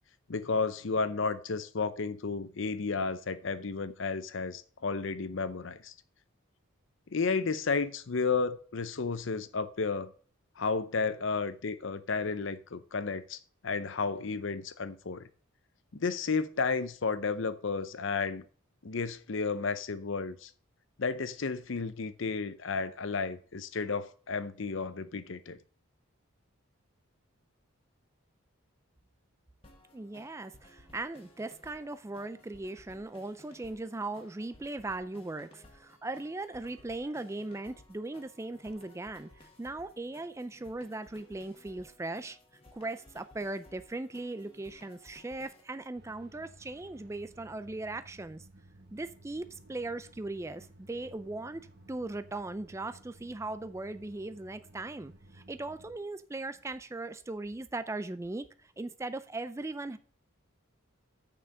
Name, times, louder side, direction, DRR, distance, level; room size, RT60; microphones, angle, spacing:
voice 1, 0.3-5.9 7.1-10.1 10.6-15.3 15.9-18.5 18.8-20.5 21.0-25.6, left 4 dB, 60° left, 0.6 m, -32 dB
sound 1, 29.6-45.6, left 1 dB, 25° left, 1.6 m, -58 dB
voice 2, 29.9-42.4 42.7-48.5 48.9-60.0, right 2 dB, 15° right, 0.3 m, -39 dB
sound 2, 45.9-56.0, right 1 dB, 50° right, 1.0 m, -56 dB
6.8 x 5.8 x 6.4 m
head